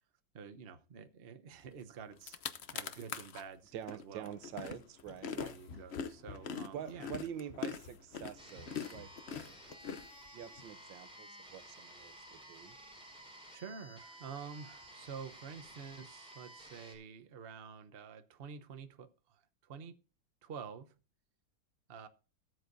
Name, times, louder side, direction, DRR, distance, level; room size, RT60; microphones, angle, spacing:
voice 1, 0.3-2.4 2.7-4.3 5.3-7.1 13.5-19.9 20.4-20.9 21.9-22.1, right 6 dB, 45° right, 0.9 m, -49 dB
Pretzel Crunching, 1.8-1.9 2.1-3.4 3.9-10.6, left 7 dB, 55° left, 0.8 m, -43 dB
voice 2, 3.7-5.5 6.7-9.6 10.3-12.8, right 9 dB, 85° right, 1.5 m, -46 dB
sound 1, 8.4-17.0, right 1 dB, 5° right, 4.0 m, -54 dB
18.5 x 8.0 x 2.6 m
omnidirectional pair, 2.0 m